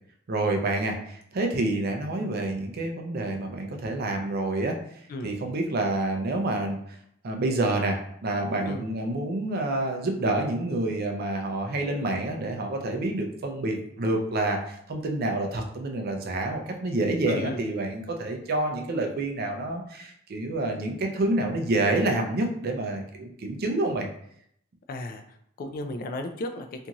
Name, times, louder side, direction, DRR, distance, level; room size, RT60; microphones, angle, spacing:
voice 1, 0.3-4.8 5.2-6.8 7.2-24.1, right 2 dB, 45° right, 3 dB, 0.4 m, -28 dB
voice 2, 17.3-17.6 24.9-26.9, left 2 dB, 45° left, 6 dB, 0.3 m, -35 dB
2.6 x 2.4 x 2.9 m, 0.69 s
head